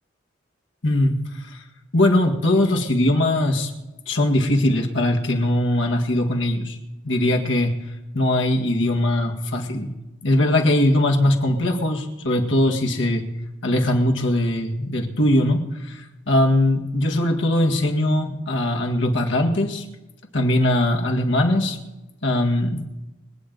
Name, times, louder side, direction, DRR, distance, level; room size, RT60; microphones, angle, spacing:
voice 1, 0.8-1.6 1.9-3.7 4.1-6.8 7.0-7.7 8.1-9.9 10.2-13.3 13.6-19.8 20.3-21.8 22.2-22.9, left 1 dB, 70° left, 2 dB, 2.0 m, -20 dB
25.0 x 9.2 x 4.1 m, 1.0 s
head